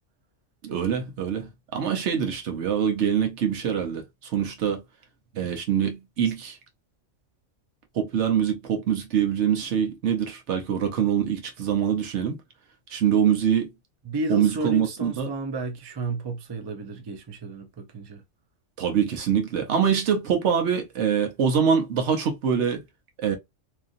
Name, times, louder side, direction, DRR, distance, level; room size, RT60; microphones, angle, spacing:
voice 1, 0.6-4.0 4.3-4.8 5.3-6.6 7.9-12.4 12.9-13.7 14.3-15.3 18.8-22.8 23.2-23.4, right 8 dB, 70° right, 1.0 m, -24 dB
voice 2, 14.0-18.2, right 3 dB, 35° right, 0.4 m, -32 dB
2.9 x 2.5 x 2.5 m
omnidirectional pair, 1.3 m